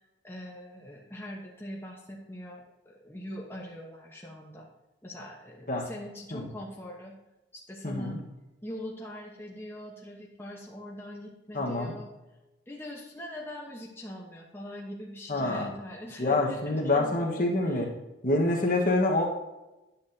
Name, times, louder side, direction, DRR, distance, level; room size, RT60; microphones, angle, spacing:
voice 1, 0.2-4.7 5.0-7.2 7.5-8.2 8.6-12.1 12.7-17.9, equal, 10° left, -2 dB, 1.1 m, -42 dB
voice 2, 7.8-8.2 11.5-11.9 15.3-15.7 16.2-17.9 18.2-19.3, left 2 dB, 45° left, 0 dB, 1.4 m, -26 dB
10.0 x 8.6 x 2.8 m, 1.0 s
head